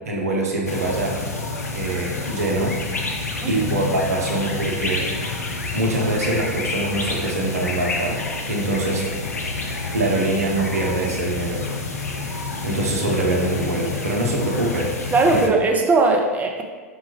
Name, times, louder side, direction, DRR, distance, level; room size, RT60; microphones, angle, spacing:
voice 1, 0.0-1.2 1.7-2.7 3.5-5.0 5.5-8.2 8.5-9.0 9.6-11.6 12.6-14.9 15.3-15.4, right 2 dB, 80° right, -1 dB, 0.8 m, -24 dB
sound 1, 0.7-15.5, left 3 dB, 85° left, 0.5 m, -28 dB
voice 2, 15.1-16.6, right 3 dB, 20° right, 2 dB, 0.5 m, -19 dB
5.3 x 2.3 x 3.2 m, 1.4 s
hypercardioid pair, 100°, 8 cm